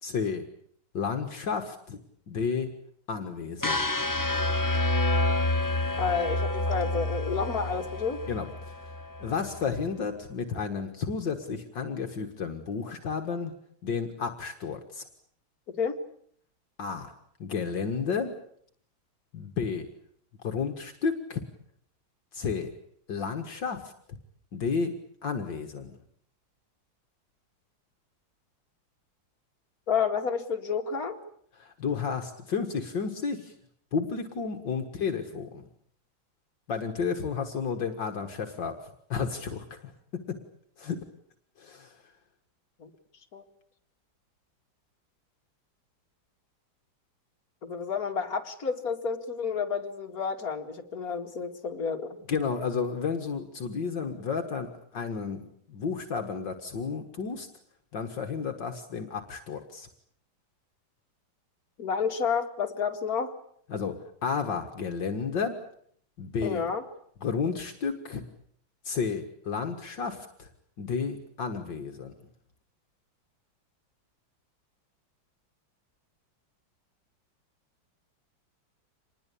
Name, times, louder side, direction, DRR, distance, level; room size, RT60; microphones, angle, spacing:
voice 1, 0.0-0.4 0.9-2.0 2.3-2.7 3.1-3.9 8.3-8.8 9.2-13.5 13.8-15.0 16.8-17.1 17.4-18.3 19.3-19.9 20.4-21.4 22.3-22.7 23.1-23.9 24.5-24.9 25.2-26.0 31.6-33.5 33.9-35.6 36.7-38.8 39.1-39.9 40.3-40.4 40.8-41.0 41.6-42.0 52.3-55.4 55.7-57.5 57.9-59.9 63.7-64.0 64.2-65.6 66.2-66.6 67.2-68.2 68.8-70.5 70.8-72.1, left 5 dB, 65° left, 6 dB, 2.4 m, -32 dB
sound 1, 3.6-9.7, left 2 dB, 15° left, 0.9 m, -28 dB
voice 2, 6.0-8.2 15.8-16.0 29.9-31.2 42.8-42.9 43.3-43.4 47.6-52.2 61.8-63.3 66.4-66.8, left 6 dB, 50° left, 3 dB, 2.7 m, -30 dB
26.5 x 20.5 x 8.5 m, 0.64 s
omnidirectional pair, 2.1 m